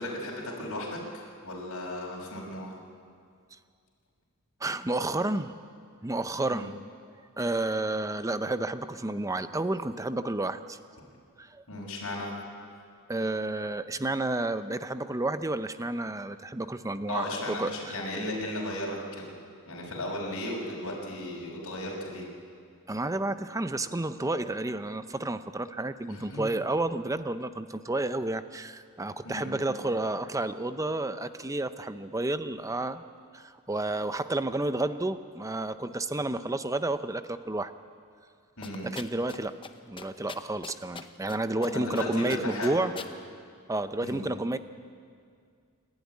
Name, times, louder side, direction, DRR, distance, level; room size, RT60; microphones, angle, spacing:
voice 1, 0.0-2.8 6.4-6.7 11.7-12.3 17.1-19.3 19.7-22.3 26.1-26.4 29.2-29.5 38.6-38.9 41.7-43.0 44.0-44.2, left 1 dB, 65° left, -3 dB, 6.0 m, -35 dB
voice 2, 4.6-5.5 6.0-6.8 7.4-10.8 11.4-11.6 13.1-18.0 22.9-33.0 33.3-37.7 38.8-39.5 39.8-42.9 43.7-44.6, right 2 dB, 15° right, 11 dB, 0.6 m, -31 dB
sound 1, 38.6-39.4 39.6-39.7 40.0-41.4 41.6-42.0 42.3-43.1, left 4 dB, 25° left, 0.8 m, -41 dB
27.5 x 12.0 x 9.7 m, 2.2 s
head